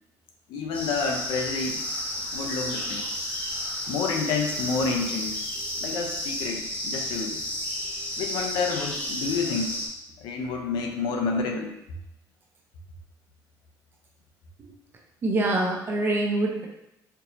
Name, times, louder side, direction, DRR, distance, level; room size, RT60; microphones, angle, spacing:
voice 1, 0.5-1.8 2.3-3.0 3.9-5.4 5.8-7.4 8.2-9.7 10.2-11.7, left 4 dB, 80° left, 2 dB, 0.6 m, -29 dB
sound 1, 0.7-9.9, left 1 dB, 20° left, 0.9 m, -32 dB
voice 2, 15.2-16.7, right 2 dB, 30° right, 0 dB, 0.6 m, -25 dB
4.5 x 2.8 x 2.7 m, 0.86 s
cardioid pair, 170°, 7 cm